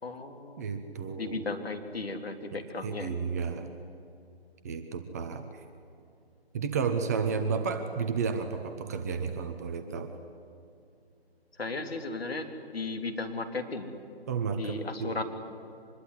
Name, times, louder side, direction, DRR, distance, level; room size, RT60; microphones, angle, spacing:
voice 1, 0.0-0.6 1.2-3.1 7.3-7.4 11.6-12.4 12.7-13.9 14.6-15.2, left 3 dB, 65° left, 5 dB, 3.5 m, -35 dB
voice 2, 0.6-1.4 2.5-3.7 4.6-5.6 6.5-10.1 14.3-15.2, right 5 dB, 15° right, 7 dB, 0.8 m, -32 dB
24.5 x 21.0 x 9.9 m, 2.6 s
figure-of-eight pair, 155°, 32 cm